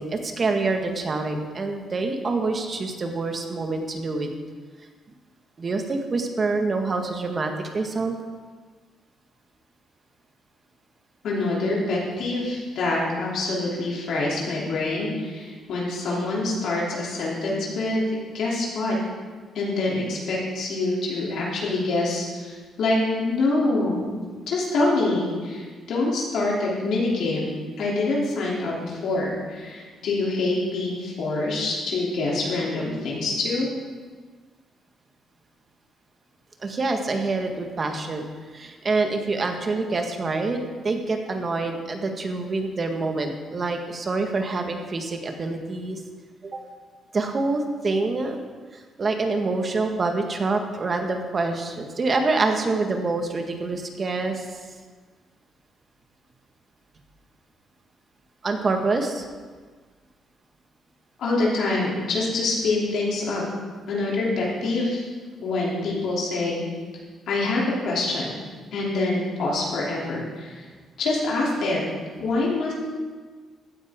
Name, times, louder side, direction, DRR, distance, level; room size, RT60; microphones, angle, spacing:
voice 1, 0.0-4.3 5.6-8.2 24.0-24.2 36.6-38.2 38.5-46.0 46.4-46.6 47.1-48.4 49.0-54.5 58.4-59.3, right 3 dB, 40° right, 4 dB, 1.6 m, -26 dB
voice 2, 11.2-18.0 18.3-19.0 19.5-24.1 24.5-27.4 27.8-33.7 61.2-63.4 63.9-65.0 65.4-66.6 67.3-68.4 68.7-70.6 71.0-71.8 72.2-72.7, left 2 dB, 75° left, -4 dB, 3.1 m, -25 dB
15.5 x 9.5 x 3.7 m, 1.5 s
cardioid pair, 90°, 0 cm